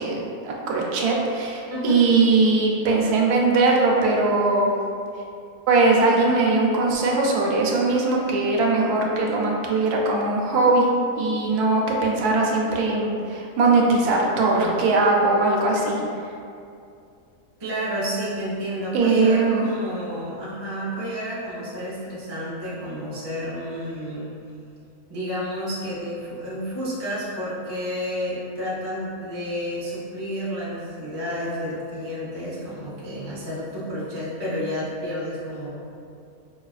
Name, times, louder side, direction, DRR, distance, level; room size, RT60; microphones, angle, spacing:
voice 1, 0.0-4.7 5.7-10.9 11.2-16.0 18.9-19.7, right 3 dB, 85° right, -1 dB, 1.1 m, -20 dB
voice 2, 1.7-2.0 17.6-24.3 25.1-35.7, equal, 25° right, -8 dB, 0.5 m, -30 dB
5.0 x 2.3 x 2.4 m, 2.5 s
omnidirectional pair, 1.6 m